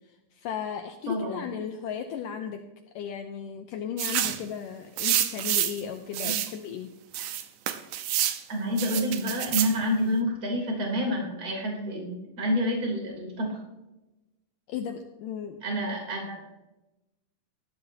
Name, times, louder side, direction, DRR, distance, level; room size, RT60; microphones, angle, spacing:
voice 1, 0.3-2.6 3.0-6.9 14.7-15.6, left 8 dB, 80° left, 5 dB, 1.9 m, -35 dB
voice 2, 1.1-1.4 6.2-6.3 8.5-13.6 15.6-16.4, equal, 25° right, -1 dB, 3.4 m, -28 dB
sound 1, 4.0-4.4 5.0-5.8 6.1-6.5 7.1-8.4 8.8-9.7, right 11 dB, 85° right, 1.8 m, -28 dB
19.0 x 12.0 x 2.8 m, 1.0 s
omnidirectional pair, 4.8 m